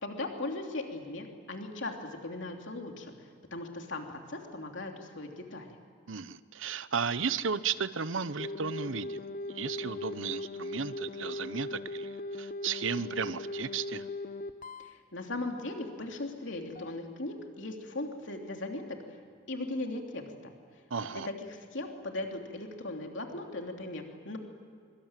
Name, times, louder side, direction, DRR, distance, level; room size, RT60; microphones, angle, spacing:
voice 1, 0.0-3.1 3.5-5.7 14.9-19.0 19.5-20.5 21.0-24.4, left 2 dB, 65° left, 2 dB, 3.1 m, -38 dB
voice 2, 6.1-9.2 9.5-14.0 20.9-21.3, right 6 dB, 75° right, 14 dB, 0.8 m, -34 dB
sound 1, 8.4-15.0 16.8-16.9, left 2 dB, 45° left, 1.0 m, -39 dB
24.5 x 24.5 x 9.0 m, 2.1 s
head